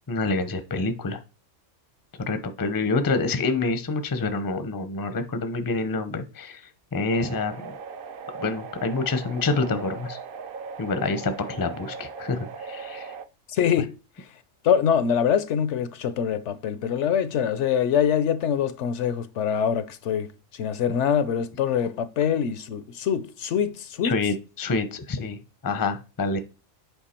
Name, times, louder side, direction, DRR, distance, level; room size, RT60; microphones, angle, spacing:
voice 1, 0.1-1.2 2.3-6.6 6.9-7.7 8.4-10.2 10.8-13.1 24.0-26.4, left 3 dB, 20° left, 0.6 m, -27 dB
sound 1, 7.1-13.3, right 5 dB, 55° right, 0.7 m, -38 dB
voice 2, 13.5-13.9 14.6-24.2, left 8 dB, 70° left, 0.9 m, -24 dB
8.0 x 4.7 x 4.3 m
omnidirectional pair, 1.3 m